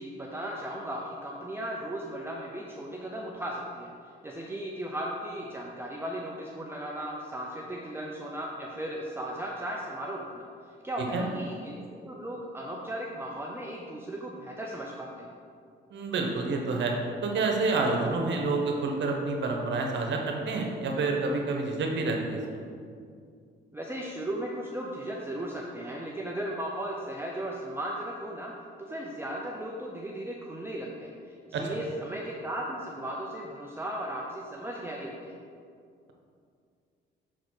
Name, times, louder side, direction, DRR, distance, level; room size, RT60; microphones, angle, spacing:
voice 1, 0.0-3.9 4.2-10.5 10.8-11.8 12.0-15.3 23.7-28.5 28.8-35.4, right 1 dB, 10° right, -2 dB, 0.6 m, -36 dB
voice 2, 15.9-17.0 17.2-22.6 31.5-31.6, right 3 dB, 65° right, 1 dB, 1.1 m, -28 dB
6.3 x 4.1 x 4.7 m, 2.3 s
cardioid pair, 90°, 20 cm